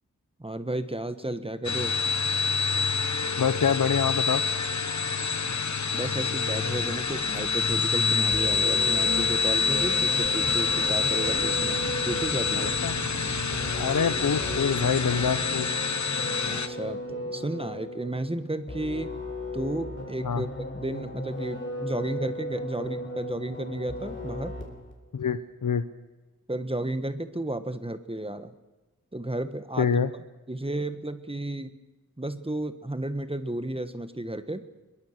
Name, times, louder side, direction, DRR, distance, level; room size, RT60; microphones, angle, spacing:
voice 1, 0.4-2.0 5.4-5.6 5.9-12.7 16.5-19.1 19.5-20.5 20.7-24.6 26.5-28.5 29.1-30.0 30.5-31.8 32.2-34.7, right 1 dB, 20° right, 10 dB, 1.4 m, -33 dB
sound 1, 1.6-16.7, left 5 dB, 65° left, 1.2 m, -27 dB
voice 2, 3.4-4.4 12.5-13.0 13.8-15.7 20.2-20.4 25.1-25.8 29.8-30.1, left 6 dB, 90° left, 11 dB, 0.9 m, -26 dB
sound 2, 8.3-24.9, left 1 dB, 40° left, 4.4 m, -36 dB
sound 3, 10.2-15.4, right 4 dB, 35° right, 0.9 m, -40 dB
22.5 x 22.0 x 6.7 m, 1.1 s
wide cardioid pair, 70°, 31 cm